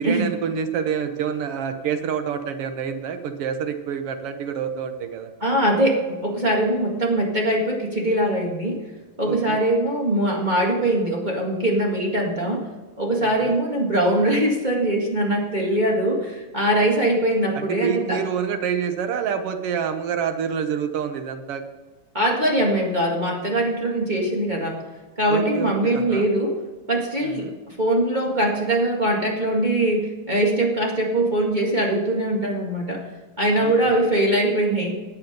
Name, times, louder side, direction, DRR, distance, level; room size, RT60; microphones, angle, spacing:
voice 1, 0.0-5.3 9.2-9.6 13.4-13.6 17.5-21.6 25.3-26.3 27.2-27.5 33.6-34.0, right 7 dB, 70° right, 8 dB, 1.4 m, -27 dB
voice 2, 5.4-8.8 9.2-12.7 13.0-18.2 22.1-24.8 25.2-26.6 26.9-33.0 33.4-34.9, right 1 dB, 20° right, -1 dB, 1.2 m, -22 dB
16.0 x 8.9 x 5.2 m, 1.3 s
omnidirectional pair, 3.8 m